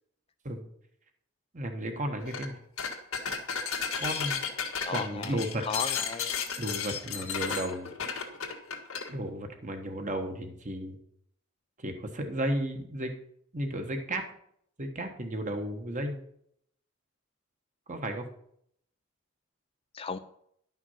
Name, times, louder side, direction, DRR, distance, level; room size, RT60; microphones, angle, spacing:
voice 1, 1.5-2.6 4.0-4.4 4.9-5.6 6.6-7.9 9.1-11.0 11.8-13.1 13.5-14.2 14.8-16.2 17.9-18.2, right 1 dB, 35° right, 5 dB, 1.3 m, -33 dB
sound 1, 2.2-2.5 2.8-9.1, left 6 dB, 85° left, 1.8 m, -33 dB
voice 2, 4.8-6.4 19.9-20.2, left 5 dB, 25° left, 10 dB, 0.5 m, -36 dB
11.5 x 6.0 x 5.6 m, 0.69 s
head